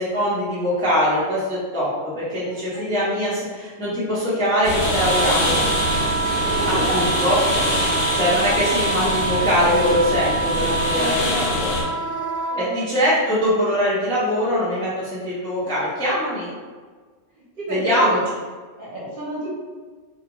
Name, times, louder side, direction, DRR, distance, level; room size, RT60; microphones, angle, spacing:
voice 1, 0.0-5.6 6.7-7.4 8.1-11.7 12.6-16.5 17.7-18.2, equal, 5° left, -9 dB, 0.4 m, -22 dB
voice 2, 2.4-2.8 6.2-7.2 7.9-8.0 10.9-11.4 12.5-12.8 17.3-18.1 18.8-19.5, right 1 dB, 50° right, -6 dB, 0.8 m, -30 dB
sound 1, 4.6-11.8, left 1 dB, 55° left, 0.7 m, -24 dB
Wind instrument woodwind instrument, 4.7-12.6, right 4 dB, 80° right, 0.9 m, -26 dB
2.5 x 2.3 x 2.9 m, 1.5 s
omnidirectional pair, 1.3 m